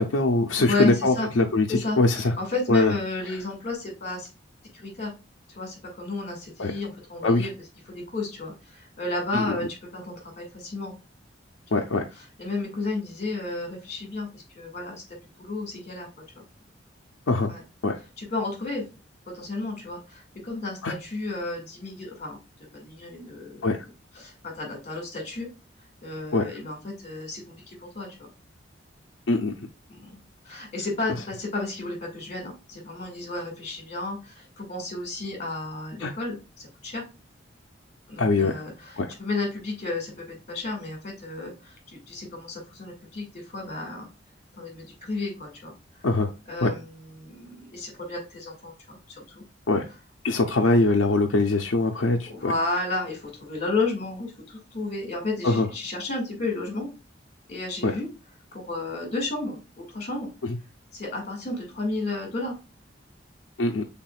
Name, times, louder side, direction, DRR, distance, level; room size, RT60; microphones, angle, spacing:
voice 1, 0.0-2.3 2.7-2.9 6.6-6.7 7.2-7.5 9.3-9.6 11.7-12.0 17.3-17.5 17.8-17.9 20.8-21.0 23.6-23.8 26.3-26.5 29.3-29.5 36.0-36.1 38.2-38.6 39.0-39.1 46.0-46.3 46.6-46.7 49.7-49.8 50.2-52.5 55.4-55.7 57.8-57.9 63.6-63.8, left 2 dB, 75° left, 1 dB, 0.6 m, -22 dB
voice 2, 0.6-1.3 1.7-4.3 4.7-5.1 5.6-7.5 7.9-9.7 9.9-10.9 11.8-11.9 12.1-16.1 16.4-16.5 17.5-17.6 18.2-18.8 19.3-22.4 22.7-25.5 26.0-28.3 29.9-30.2 30.4-37.0 38.1-44.1 44.6-45.7 46.5-49.4 50.3-50.5 52.3-56.9 57.5-58.1 58.5-60.3 60.9-62.6, left 2 dB, 40° left, 1 dB, 2.0 m, -32 dB
5.9 x 3.5 x 2.3 m, 0.29 s
head